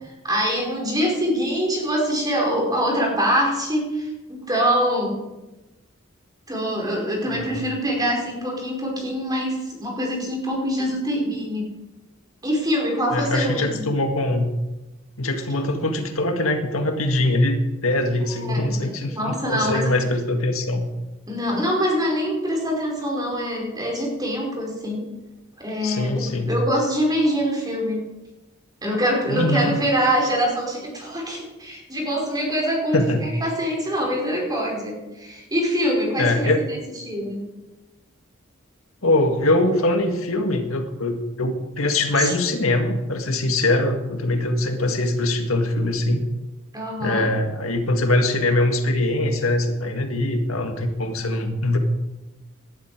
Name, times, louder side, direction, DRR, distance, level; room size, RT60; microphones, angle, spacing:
voice 1, 0.0-5.2 6.5-11.7 12.4-13.9 18.3-19.9 21.3-25.1 25.6-28.0 28.8-36.8 37.0-37.5 42.2-42.3 46.7-47.3, equal, 20° right, -1 dB, 5.0 m, -24 dB
voice 2, 13.1-14.5 15.2-20.9 25.8-26.6 29.3-29.7 32.9-33.3 36.2-36.6 39.0-46.2 47.0-51.8, left 2 dB, 80° left, 4 dB, 1.9 m, -22 dB
19.0 x 12.0 x 4.9 m, 1.1 s
head